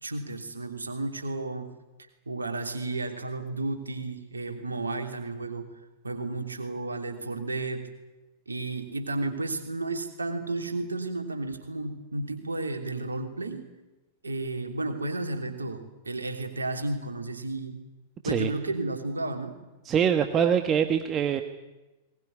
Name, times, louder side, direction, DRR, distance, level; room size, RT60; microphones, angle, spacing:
voice 1, 0.0-1.7 2.3-5.7 6.0-7.9 8.5-13.6 14.2-17.8 18.2-19.5, right 2 dB, 75° right, 5 dB, 3.1 m, -32 dB
voice 2, 19.9-21.4, right 8 dB, 25° right, 7 dB, 1.5 m, -24 dB
21.5 x 19.5 x 9.9 m, 1.1 s
figure-of-eight pair, 95°, 0 cm